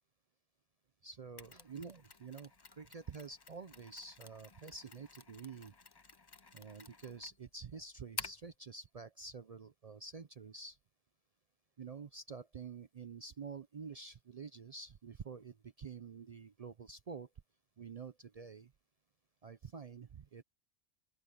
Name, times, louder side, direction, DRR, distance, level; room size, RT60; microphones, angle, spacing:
voice 1, 1.0-5.7 6.5-10.8 11.8-17.3 17.8-18.7 19.4-20.4, right 5 dB, 55° right, 0.4 m, -48 dB
Mechanisms, 1.4-8.5, left 4 dB, 30° left, 0.5 m, -51 dB
open air
omnidirectional pair, 1.3 m